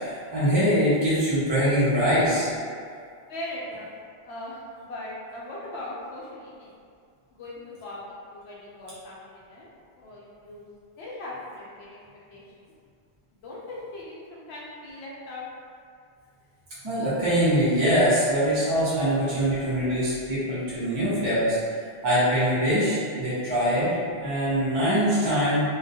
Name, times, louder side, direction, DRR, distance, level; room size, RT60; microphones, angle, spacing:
voice 1, 0.0-2.5 16.8-21.6 22.0-25.6, equal, 30° right, -11 dB, 0.5 m, -23 dB
voice 2, 3.3-3.9 4.2-6.7 7.4-8.0 8.3-10.6 11.0-11.9 12.3-12.7 13.4-15.5, left 1 dB, 70° left, -6 dB, 0.8 m, -39 dB
2.4 x 2.2 x 2.6 m, 2.2 s
omnidirectional pair, 1.2 m